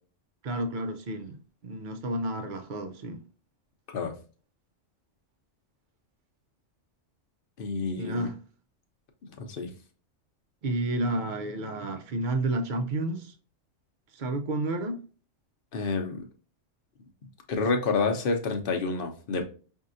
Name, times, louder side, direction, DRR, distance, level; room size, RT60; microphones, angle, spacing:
voice 1, 0.4-1.4 1.6-3.2 8.0-8.4 10.6-13.3 14.1-15.0, right 2 dB, 55° right, 0.6 m, -31 dB
voice 2, 7.6-8.3 9.4-9.7 15.7-16.3 17.5-19.4, left 4 dB, 55° left, 0.8 m, -28 dB
5.2 x 2.7 x 2.5 m
omnidirectional pair, 1.3 m